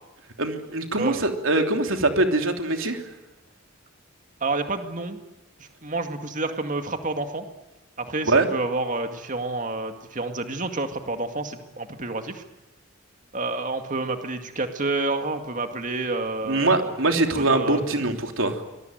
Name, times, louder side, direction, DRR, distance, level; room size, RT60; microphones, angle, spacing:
voice 1, 0.4-3.0 8.3-8.5 16.4-18.6, right 2 dB, 70° right, 5 dB, 3.2 m, -23 dB
voice 2, 1.0-1.3 4.4-5.2 5.6-7.4 8.0-12.4 13.3-16.9 17.3-18.0, right 2 dB, 40° right, 6 dB, 2.2 m, -29 dB
25.5 x 21.5 x 9.3 m, 1.0 s
head